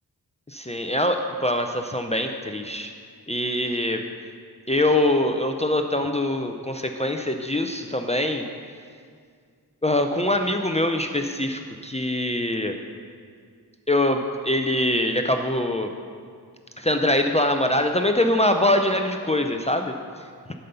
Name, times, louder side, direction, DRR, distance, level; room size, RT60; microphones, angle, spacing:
voice 1, 0.5-2.9 3.3-4.0 4.7-8.4 9.8-12.7 13.9-15.9 16.8-19.9, left 1 dB, 15° left, 5 dB, 0.6 m, -23 dB
11.5 x 5.5 x 6.8 m, 2.1 s
wide cardioid pair, 60°, 39 cm